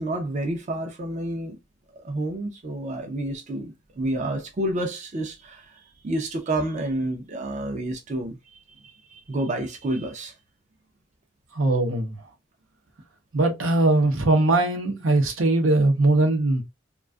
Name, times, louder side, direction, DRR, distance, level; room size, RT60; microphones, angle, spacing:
voice 1, 0.0-1.6 1.9-10.3, right 1 dB, 40° right, 0.4 m, -30 dB
voice 2, 11.5-12.1 13.3-16.6, right 2 dB, 90° right, 0.7 m, -20 dB
2.4 x 2.3 x 2.2 m
head